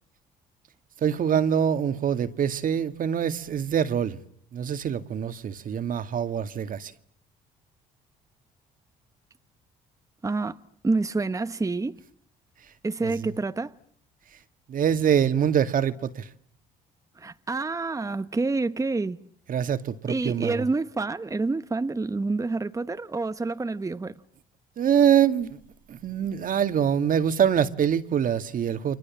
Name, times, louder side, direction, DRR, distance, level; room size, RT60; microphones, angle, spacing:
voice 1, 1.0-4.2 4.5-6.9 13.0-13.1 14.7-16.3 19.5-20.6 24.8-25.6 25.9-29.0, right 8 dB, 55° right, 2.2 m, -24 dB
voice 2, 10.2-12.0 12.8-13.7 17.2-19.2 20.1-24.2, right 3 dB, 20° right, 1.2 m, -28 dB
29.5 x 25.0 x 7.4 m
supercardioid pair, 70°, 17 cm